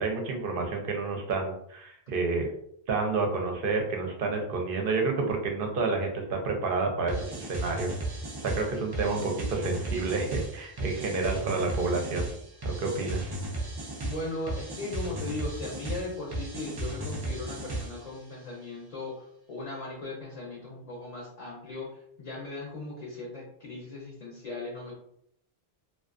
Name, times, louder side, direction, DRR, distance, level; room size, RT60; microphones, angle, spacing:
voice 1, 0.0-2.5 2.9-8.0 8.4-12.3 12.6-13.3, right 3 dB, 65° right, 2 dB, 0.7 m, -29 dB
sound 1, 7.1-18.1, right 1 dB, 40° right, 0.3 m, -35 dB
voice 2, 14.0-24.9, left 2 dB, 45° left, -3 dB, 0.6 m, -38 dB
2.4 x 2.3 x 2.4 m, 0.71 s
omnidirectional pair, 1.0 m